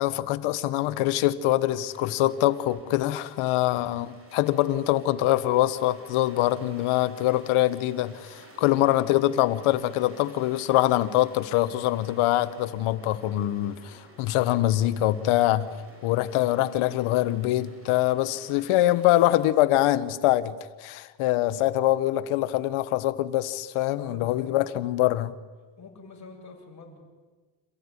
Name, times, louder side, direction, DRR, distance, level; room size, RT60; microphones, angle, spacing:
voice 1, 0.0-15.7 16.0-25.3, left 15 dB, 80° left, 1.4 m, -24 dB
sound 1, 1.7-19.4, right 1 dB, 25° right, 7.0 m, -53 dB
voice 2, 23.9-24.6 25.8-27.0, left 4 dB, 35° left, 7.7 m, -46 dB
27.5 x 15.0 x 9.9 m
cardioid pair, 110°, 48 cm